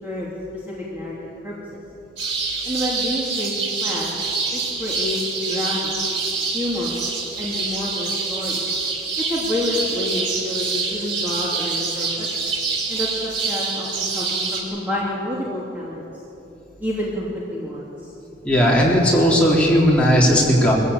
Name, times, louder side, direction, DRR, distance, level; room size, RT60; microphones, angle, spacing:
voice 1, 0.0-0.3 0.7-1.2 1.4-1.5 2.7-3.5 3.8-4.1 4.5-5.2 5.5-6.0 6.5-6.9 7.4-8.6 9.3-12.3 12.9-16.1 16.8-17.9, left 1 dB, 10° right, -6 dB, 2.8 m, -28 dB
sound 1, 2.2-14.6, right 4 dB, 85° right, 4.0 m, -26 dB
voice 2, 18.4-20.7, equal, 5° left, -5 dB, 3.8 m, -16 dB
22.0 x 15.5 x 8.5 m, 2.9 s
head